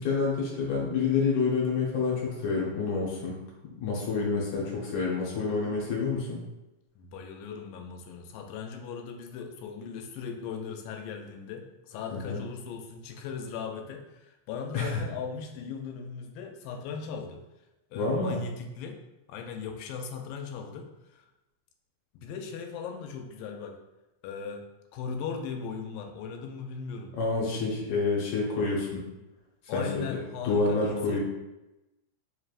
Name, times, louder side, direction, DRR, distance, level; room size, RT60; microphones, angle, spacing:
voice 1, 0.0-3.4 3.6-6.4 12.1-12.4 14.7-15.0 17.9-18.4 27.1-29.0 29.7-30.2 30.4-31.2, left 4 dB, 65° left, -4 dB, 2.0 m, -28 dB
voice 2, 7.0-17.4 17.9-19.0 19.3-21.3 22.1-23.8 24.2-24.7 24.9-27.1 29.7-31.2, left 6 dB, 85° left, 4 dB, 2.3 m, -38 dB
5.0 x 3.2 x 2.4 m, 0.99 s
omnidirectional pair, 3.9 m